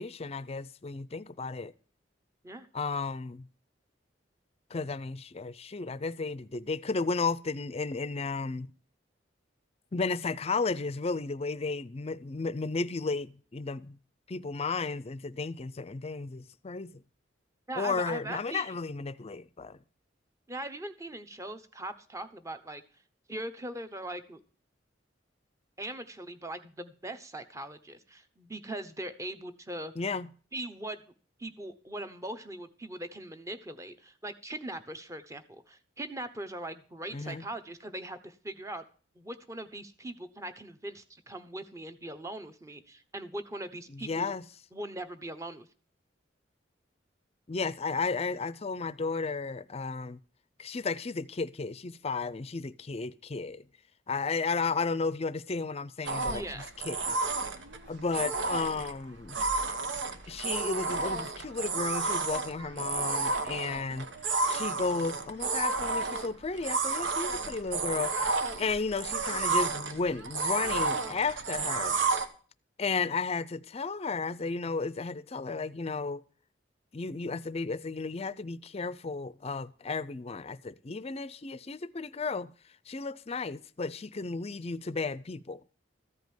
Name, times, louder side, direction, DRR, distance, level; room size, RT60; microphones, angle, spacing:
voice 1, 0.0-1.7 2.7-3.5 4.7-8.7 9.9-14.0 14.3-17.0 17.8-19.8 30.0-30.3 37.1-37.4 43.9-44.4 47.5-50.2 50.6-53.7 54.1-57.2 57.9-59.4 60.3-64.1 64.5-72.0 72.8-76.2 76.9-82.5 82.9-85.6, left 4 dB, 35° left, 0.5 m, -33 dB
voice 2, 17.7-18.8 20.5-22.8 23.3-24.4 25.8-29.9 30.5-31.0 31.4-38.8 39.2-44.3 44.7-45.7 56.3-56.6, right 1 dB, 15° right, 0.9 m, -40 dB
sound 1, 56.0-72.2, right 3 dB, 80° right, 1.2 m, -31 dB
14.5 x 5.2 x 9.3 m
head